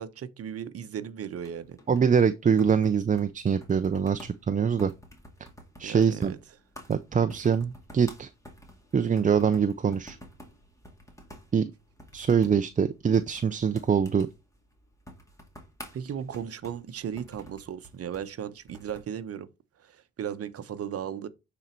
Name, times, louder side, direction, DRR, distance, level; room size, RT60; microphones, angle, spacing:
voice 1, 0.0-1.8 5.8-6.4 15.9-19.5 19.8-21.3, right 8 dB, 50° right, 0.9 m, -36 dB
sound 1, 1.3-19.2, equal, 10° left, 2.2 m, -51 dB
voice 2, 1.9-4.9 5.8-6.3 6.9-8.3 8.9-10.2 11.5-11.6 12.1-14.3, right 6 dB, 25° right, 0.5 m, -24 dB
8.9 x 4.0 x 4.4 m
cardioid pair, 90°, 30 cm